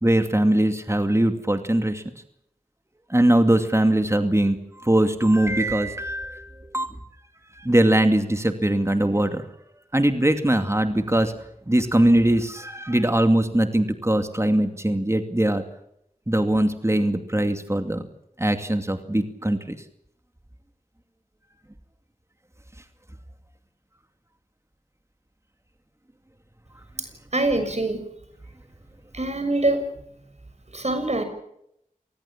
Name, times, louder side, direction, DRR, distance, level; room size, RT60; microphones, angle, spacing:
voice 1, 0.0-2.0 3.1-6.9 7.5-9.5 9.9-11.3 11.7-15.6 16.3-18.1 18.4-19.8, right 1 dB, 20° right, 7 dB, 2.4 m, -21 dB
voice 2, 27.3-28.0 29.1-29.8 30.7-31.2, right 2 dB, 50° right, 8 dB, 6.6 m, -24 dB
27.0 x 20.0 x 7.4 m, 0.76 s
wide cardioid pair, 40°, 14 cm